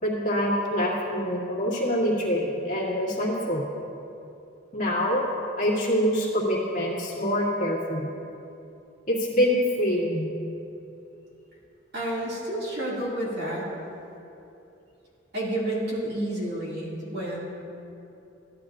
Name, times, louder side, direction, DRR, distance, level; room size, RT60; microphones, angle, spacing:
voice 1, 0.0-3.7 4.7-5.2 5.6-8.1 9.1-10.3, equal, 40° left, -6 dB, 1.9 m, -25 dB
voice 2, 11.9-13.7 15.3-17.4, right 1 dB, 55° right, -6 dB, 2.4 m, -30 dB
14.0 x 10.0 x 2.5 m, 2.8 s
head